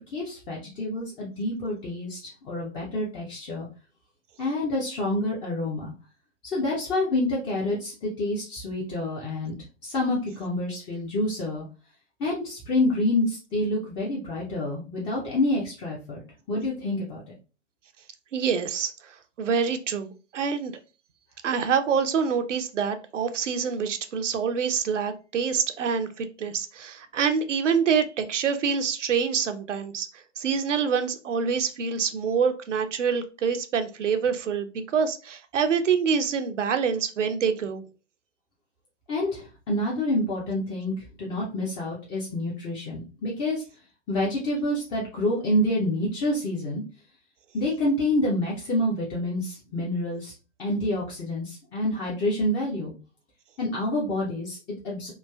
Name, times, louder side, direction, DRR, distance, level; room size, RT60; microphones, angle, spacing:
voice 1, 0.1-3.7 4.4-5.9 6.4-9.6 9.8-11.6 12.2-16.2 16.5-17.2 39.1-43.6 44.1-46.8 47.5-50.3 50.6-52.9 53.6-55.1, left 1 dB, 15° left, 0.4 m, -28 dB
voice 2, 18.3-20.7 21.4-30.1 30.4-37.8, right 6 dB, 75° right, 0.6 m, -26 dB
3.1 x 2.3 x 2.2 m
figure-of-eight pair, 105°, 36 cm